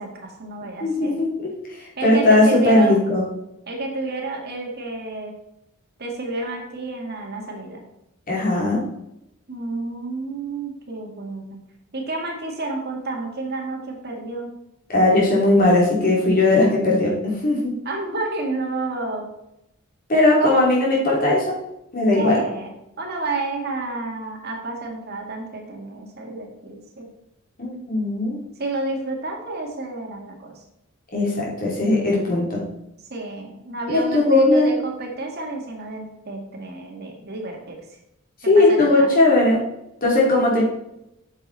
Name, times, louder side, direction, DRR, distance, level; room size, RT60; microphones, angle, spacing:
voice 1, 0.0-1.2 2.0-3.0 3.7-5.3 6.0-7.8 9.5-11.6 11.9-14.5 17.8-19.3 20.4-20.7 22.1-22.7 23.0-27.1 28.6-30.5 33.1-37.8 38.4-39.1, right 3 dB, 50° right, 1 dB, 2.0 m, -30 dB
voice 2, 0.8-1.5 2.0-3.2 8.3-8.8 14.9-17.1 17.4-17.7 20.1-21.4 21.9-22.4 27.6-28.4 31.1-32.6 33.9-34.8 38.5-39.6 40.0-40.6, left 2 dB, 45° left, -4 dB, 3.4 m, -18 dB
8.9 x 6.8 x 4.2 m, 0.83 s
head